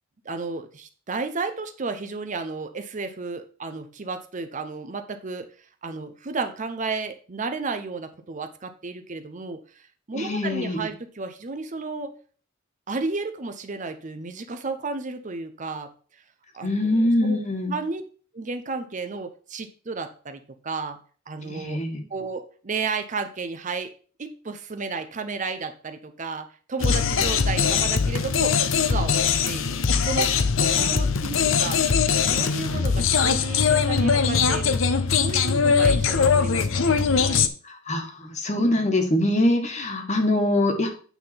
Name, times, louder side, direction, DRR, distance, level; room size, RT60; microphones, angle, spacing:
voice 1, 0.2-5.5 5.8-12.2 12.9-15.9 16.5-17.4 17.7-18.0 18.3-21.0 21.3-21.8 22.1-23.9 24.2-29.8 30.0-31.8 32.2-34.8 35.1-37.5, right 4 dB, 40° right, 7 dB, 0.7 m, -33 dB
voice 2, 10.1-10.9 16.6-17.7 21.4-22.0 30.8-30.9 37.6-40.9, left 1 dB, 35° left, 5 dB, 1.4 m, -24 dB
sound 1, 26.8-37.5, left 6 dB, 75° left, 0.7 m, -21 dB
9.1 x 3.7 x 5.8 m, 0.41 s
head